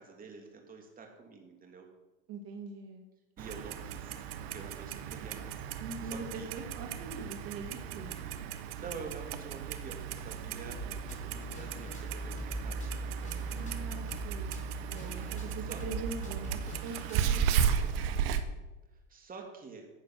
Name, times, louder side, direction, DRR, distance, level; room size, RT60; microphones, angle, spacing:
voice 1, 0.0-1.9 3.4-6.5 8.8-13.5 15.7-15.8 17.2-17.9 18.9-19.9, right 4 dB, 30° right, 2 dB, 2.8 m, -48 dB
voice 2, 2.3-3.1 5.8-8.2 13.5-18.2, right 4 dB, 50° right, 3 dB, 1.7 m, -43 dB
Clock, 3.4-18.4, right 7 dB, 70° right, 1.1 m, -35 dB
sound 1, 10.7-17.5, left 1 dB, 25° left, 4.8 m, -45 dB
12.0 x 8.4 x 6.3 m, 1.1 s
hypercardioid pair, 100°, 30 cm